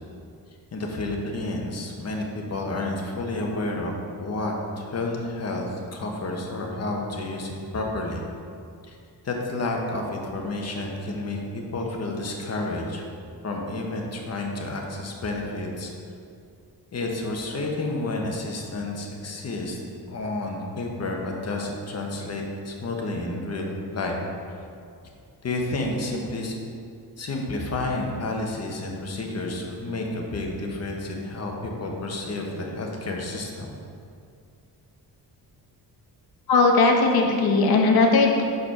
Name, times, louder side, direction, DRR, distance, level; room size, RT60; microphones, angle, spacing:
voice 1, 0.7-3.9 4.2-8.2 8.9-9.0 9.2-13.1 13.4-15.9 16.9-19.8 20.1-24.2 25.4-26.5 27.2-33.7, left 2 dB, 40° left, 0 dB, 1.1 m, -30 dB
voice 2, 36.5-38.4, left 3 dB, 65° left, 2 dB, 1.1 m, -18 dB
6.4 x 4.9 x 5.8 m, 2.4 s
wide cardioid pair, 145°, 39 cm